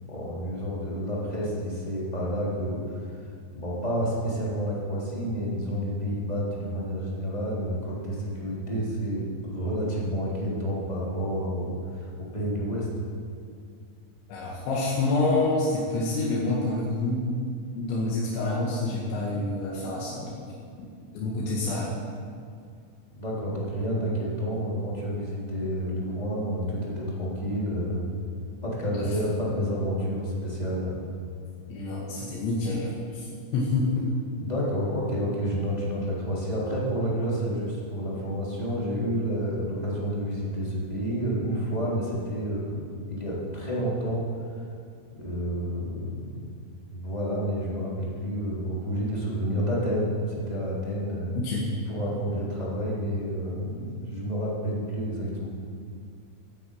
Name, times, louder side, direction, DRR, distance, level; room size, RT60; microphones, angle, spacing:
voice 1, 0.1-2.8 3.5-12.0 12.3-12.9 23.1-28.1 28.6-31.0 34.4-44.2 45.1-46.2 46.9-50.1 50.5-51.4 51.9-55.5, equal, 10° left, -6 dB, 3.4 m, -29 dB
voice 2, 14.3-17.3 17.8-20.4 21.1-21.9 28.9-29.1 31.7-33.2 33.5-34.1 51.4-51.7, left 2 dB, 80° left, -5 dB, 4.4 m, -27 dB
16.5 x 9.6 x 8.7 m, 2.2 s
omnidirectional pair, 5.1 m